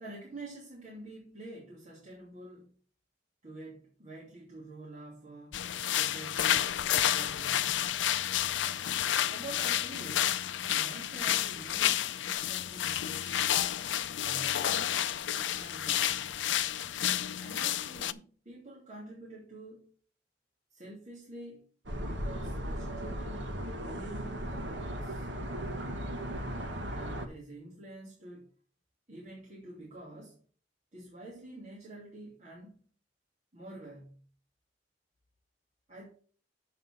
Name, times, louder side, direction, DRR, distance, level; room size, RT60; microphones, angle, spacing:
voice 1, 0.0-2.7 3.4-5.6 5.9-8.1 9.3-10.4 10.6-13.5 14.2-15.0 15.3-16.4 17.4-19.9 20.7-21.7 22.1-23.5 23.8-25.3 26.9-28.5 29.1-30.4 30.9-32.8 33.5-34.2 35.9-36.1, right 2 dB, 40° right, -6 dB, 2.9 m, -48 dB
sound 1, 5.5-18.1, left 11 dB, 80° left, 0.5 m, -30 dB
sound 2, 21.9-27.3, equal, 85° right, 1.5 m, -37 dB
7.6 x 5.6 x 6.2 m, 0.43 s
head